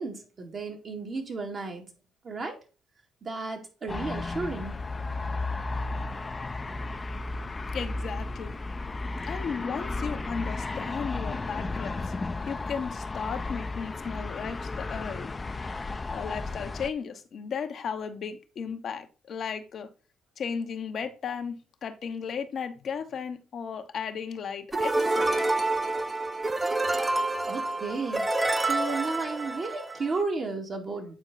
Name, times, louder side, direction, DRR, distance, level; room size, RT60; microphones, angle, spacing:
voice 1, 0.0-1.9 2.2-2.6 3.2-4.8 27.5-31.1, right 3 dB, 50° right, 2.2 m, -33 dB
sound 1, 3.9-16.9, left 3 dB, 30° left, 0.6 m, -34 dB
voice 2, 7.7-8.6 9.3-12.1 12.5-15.3 16.1-19.9 20.4-25.4, left 6 dB, 60° left, 0.9 m, -35 dB
sound 2, 24.7-30.2, right 2 dB, 25° right, 0.9 m, -28 dB
8.6 x 4.5 x 4.0 m
hypercardioid pair, 50°, 0 cm